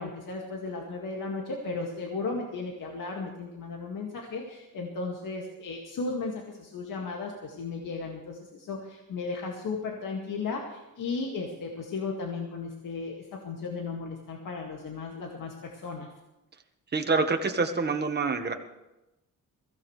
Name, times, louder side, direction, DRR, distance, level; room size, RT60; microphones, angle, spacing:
voice 1, 0.0-16.1, left 4 dB, 75° left, -1 dB, 2.2 m, -35 dB
voice 2, 16.9-18.5, right 4 dB, 30° right, 5 dB, 1.5 m, -26 dB
22.5 x 16.0 x 3.3 m, 0.97 s
cardioid pair, 130°, 33 cm